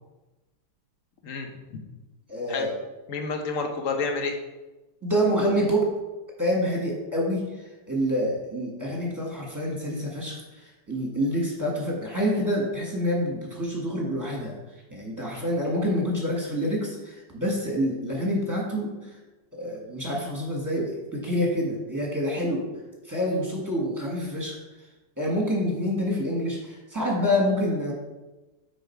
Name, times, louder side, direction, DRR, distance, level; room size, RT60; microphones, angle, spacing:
voice 1, 1.2-1.8 2.5-2.7 3.1-4.4, left 4 dB, 50° left, 4 dB, 1.0 m, -29 dB
voice 2, 2.3-2.7 5.0-5.9 6.4-7.5 7.9-10.4 10.9-14.5 14.9-19.0 19.5-22.7 23.1-24.6 25.2-27.9, equal, 10° right, -3 dB, 1.3 m, -27 dB
9.3 x 4.3 x 4.6 m, 1.1 s
omnidirectional pair, 2.3 m